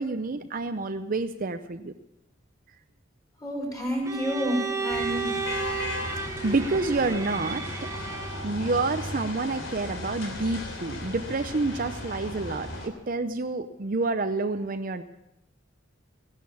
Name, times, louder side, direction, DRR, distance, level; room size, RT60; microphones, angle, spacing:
voice 1, 0.0-1.9 6.2-7.9 8.4-15.0, right 3 dB, 45° right, 8 dB, 0.6 m, -28 dB
voice 2, 3.4-5.7, equal, 15° left, -1 dB, 5.2 m, -30 dB
Bowed string instrument, 4.1-8.6, right 4 dB, 15° right, 1.0 m, -33 dB
sound 1, 4.9-12.9, left 1 dB, 85° left, 3.3 m, -36 dB
16.5 x 11.5 x 7.0 m, 0.86 s
head